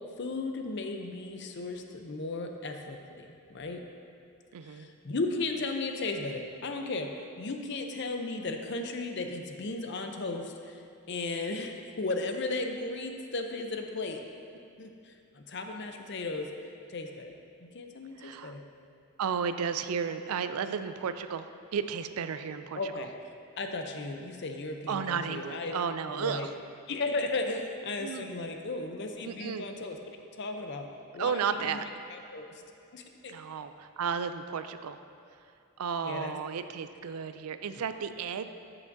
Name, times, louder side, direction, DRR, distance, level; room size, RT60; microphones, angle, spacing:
voice 1, 0.2-3.9 4.6-10.8 11.1-14.2 14.8-16.5 16.9-17.3 17.6-18.6 22.7-23.1 23.6-25.8 26.2-26.5 26.9-30.0 30.4-31.8 32.1-32.6 32.9-33.3 36.0-36.3, left 3 dB, 50° left, 4 dB, 0.6 m, -35 dB
voice 2, 4.5-4.9 18.2-18.6 19.2-22.9 24.9-26.5 28.0-28.3 29.2-29.7 31.2-31.9 33.3-35.0 35.8-38.5, right 6 dB, 80° right, 10 dB, 0.4 m, -33 dB
14.0 x 5.8 x 2.6 m, 2.5 s
head